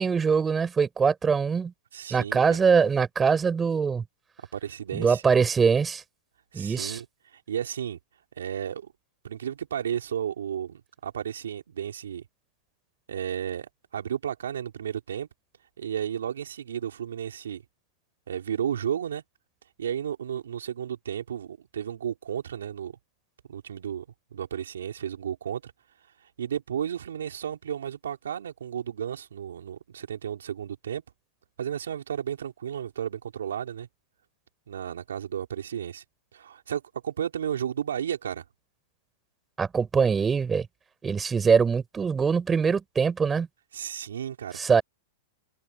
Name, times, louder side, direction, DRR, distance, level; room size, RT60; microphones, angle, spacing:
voice 1, 0.0-1.7 2.1-4.0 4.9-6.0 6.5-7.0 39.6-40.7 41.0-43.5 44.5-44.8, right 5 dB, 15° right, 6.2 m, -23 dB
voice 2, 1.9-2.6 4.5-5.2 6.5-7.1 7.3-8.0 8.4-8.9 9.2-12.2 13.1-15.3 15.8-17.6 18.3-19.2 19.8-23.0 23.5-24.1 24.3-25.7 26.4-31.0 31.6-33.9 34.7-36.0 36.3-38.4 43.7-44.6, right 9 dB, 85° right, 3.9 m, -33 dB
hypercardioid pair, 125°, 0 cm